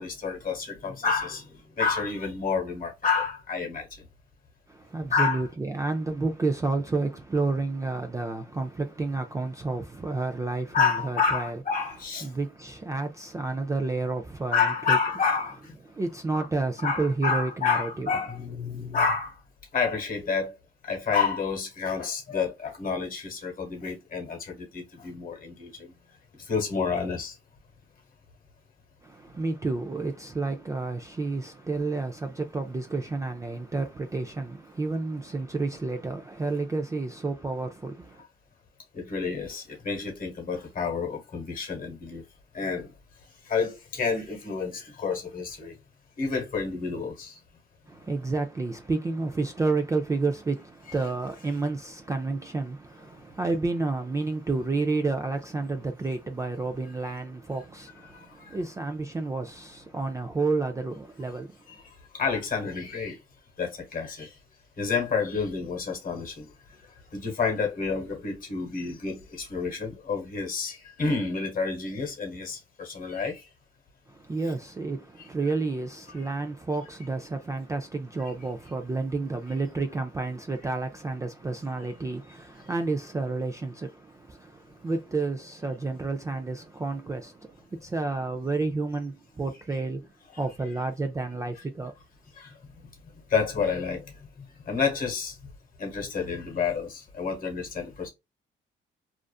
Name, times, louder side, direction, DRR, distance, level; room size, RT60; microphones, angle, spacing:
voice 1, 0.0-3.9 5.1-5.4 10.7-12.3 14.5-15.7 16.8-19.4 19.7-20.5 20.8-25.9 26.4-27.4 38.9-42.2 42.5-42.9 43.5-45.7 46.2-47.4 58.1-58.6 62.1-63.2 63.6-64.4 64.8-66.5 67.1-73.4 92.3-92.9 93.3-94.0 94.4-95.4 95.8-98.1, left 5 dB, 45° left, 1.2 m, -29 dB
voice 2, 4.7-11.6 12.2-15.0 15.9-18.1 29.0-38.2 47.9-61.8 74.1-91.9, right 3 dB, 15° right, 0.3 m, -30 dB
2.5 x 2.4 x 2.3 m
cardioid pair, 90°, 20 cm